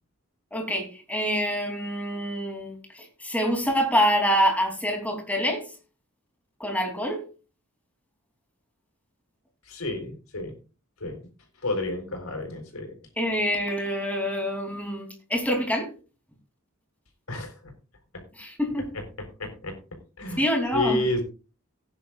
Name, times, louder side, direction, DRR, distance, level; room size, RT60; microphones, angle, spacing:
voice 1, 0.5-5.6 6.6-7.2 13.2-15.9 18.4-18.9 20.4-21.0, equal, 5° left, 2 dB, 3.1 m, -26 dB
voice 2, 9.6-10.5 11.0-11.3 11.6-12.9 17.3-17.6 18.1-18.2 18.9-19.8 20.2-20.4 20.7-21.2, left 2 dB, 90° left, 3 dB, 4.1 m, -30 dB
18.0 x 9.7 x 2.5 m, 0.34 s
head